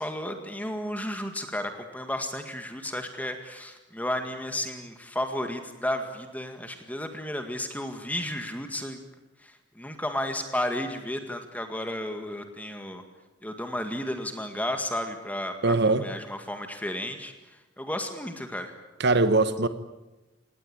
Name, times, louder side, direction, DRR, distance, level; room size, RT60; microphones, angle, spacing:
voice 1, 0.0-9.0 9.4-13.0 13.4-15.7 16.0-17.3 17.8-18.7, left 1 dB, 10° left, 1.9 m, -33 dB
voice 2, 15.6-16.1 19.0-19.7, right 3 dB, 60° right, 1.3 m, -21 dB
26.0 x 19.5 x 9.0 m
head